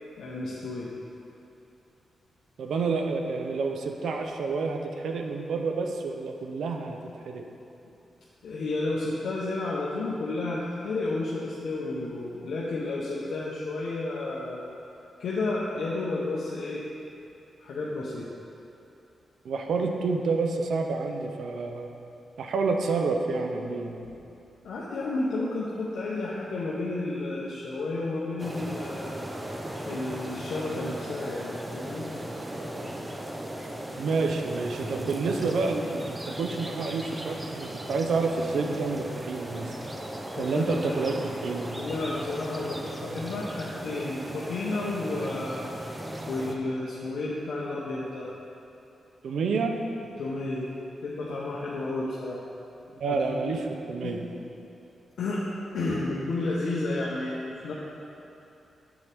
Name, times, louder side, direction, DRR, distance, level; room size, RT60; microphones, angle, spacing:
voice 1, 0.2-0.9 8.4-14.6 15.2-16.8 17.6-18.3 24.0-24.1 24.6-29.3 29.9-32.1 40.4-41.0 41.8-45.7 46.3-48.3 50.2-50.7 51.0-52.4 53.1-53.2 53.4-53.6 54.0-54.1 55.2-55.4 55.7-57.7, left 2 dB, 80° left, -6 dB, 0.8 m, -31 dB
voice 2, 2.6-7.0 7.3-7.4 19.4-21.9 22.4-23.9 34.0-39.7 40.4-41.7 49.2-49.8 53.0-53.6 53.9-54.2, right 4 dB, 75° right, 4 dB, 0.6 m, -29 dB
sound 1, 28.4-46.6, right 1 dB, 15° right, 0.5 m, -37 dB
7.3 x 7.0 x 3.4 m, 2.8 s
wide cardioid pair, 130°, 0 cm